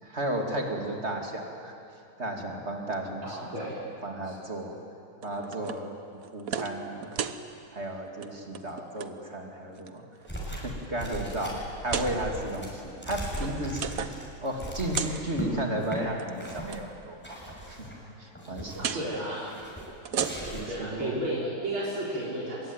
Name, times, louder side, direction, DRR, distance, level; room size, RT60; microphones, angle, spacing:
voice 1, 0.0-1.7 2.2-4.8 5.2-5.9 6.3-7.1 7.7-10.0 10.5-17.9 18.2-19.0 20.4-21.1, right 1 dB, 30° right, 2 dB, 3.0 m, -34 dB
voice 2, 3.2-3.8 4.2-4.3 18.7-19.5 20.7-22.7, right 1 dB, 80° right, -6 dB, 5.1 m, -33 dB
sound 1, 5.2-5.8 6.2-6.8 7.0-7.4 8.1-8.3 8.5-9.1 9.8-10.3 10.8-10.9 11.8-12.1 12.9-14.3 14.6-15.2 16.1-16.8 18.8-19.0 19.9-20.7, right 7 dB, 50° right, 1.2 m, -34 dB
sound 2, 10.3-10.7 11.0-15.5 15.8-16.0 16.4-16.8 17.2-18.0 18.3-18.9 19.5-19.9 20.1-20.8, right 1 dB, 5° left, 6.5 m, -38 dB
24.5 x 22.5 x 9.3 m, 2.6 s
omnidirectional pair, 2.2 m